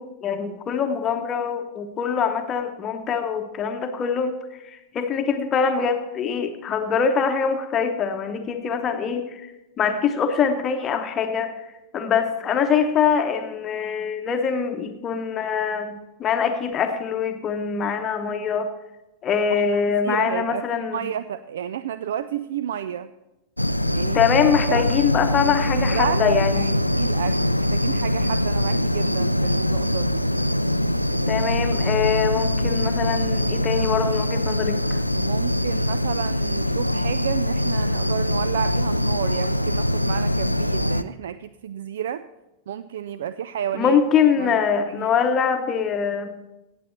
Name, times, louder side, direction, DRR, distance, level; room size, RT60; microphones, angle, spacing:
voice 1, 0.0-4.3 4.6-9.5 9.8-11.5 11.9-18.7 19.2-21.0 24.1-26.7 31.3-35.0 43.7-46.3, left 6 dB, 25° left, 6 dB, 0.9 m, -23 dB
voice 2, 19.5-23.1 23.9-24.2 24.7-24.9 25.4-30.3 35.1-42.2 42.7-44.0 44.4-44.6 44.9-45.1, right 9 dB, 60° right, 14 dB, 0.3 m, -31 dB
sound 1, 23.6-41.0, left 1 dB, 90° left, 0.4 m, -23 dB
17.0 x 7.8 x 4.3 m, 0.98 s
figure-of-eight pair, 90°, 0 cm